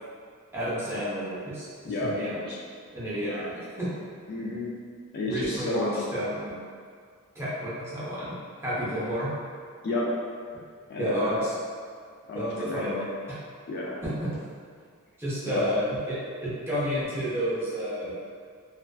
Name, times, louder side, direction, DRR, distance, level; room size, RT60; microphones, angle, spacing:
voice 1, 0.5-1.7 2.0-2.4 2.9-3.9 5.2-6.6 7.3-9.3 11.0-11.5 12.3-13.4 14.0-14.3 15.2-18.1, equal, 10° right, -10 dB, 0.5 m, -31 dB
voice 2, 1.9-2.6 3.2-3.5 4.3-4.7 5.1-6.0 9.8-10.1 10.9-11.4 12.3-12.9 13.7-14.0 15.4-15.6, left 2 dB, 45° left, -4 dB, 0.4 m, -31 dB
2.4 x 2.2 x 2.2 m, 2.1 s
head